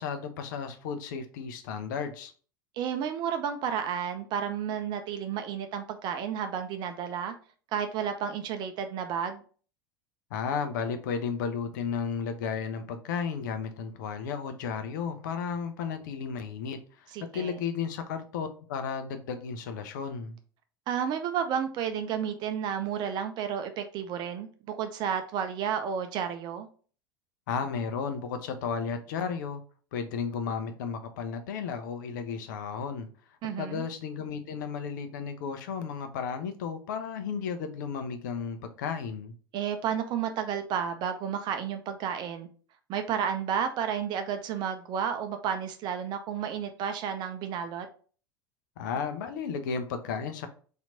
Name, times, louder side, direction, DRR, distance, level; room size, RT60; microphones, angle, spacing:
voice 1, 0.0-2.3 10.3-20.4 27.5-29.6 29.9-33.1 33.6-39.3 48.8-50.5, left 6 dB, 55° left, 0.6 m, -33 dB
voice 2, 2.8-7.3 7.7-9.4 17.1-17.6 20.9-26.7 33.4-33.8 39.5-42.5 42.9-47.9, right 8 dB, 40° right, 0.5 m, -32 dB
4.3 x 2.7 x 3.8 m
figure-of-eight pair, 80°, 12 cm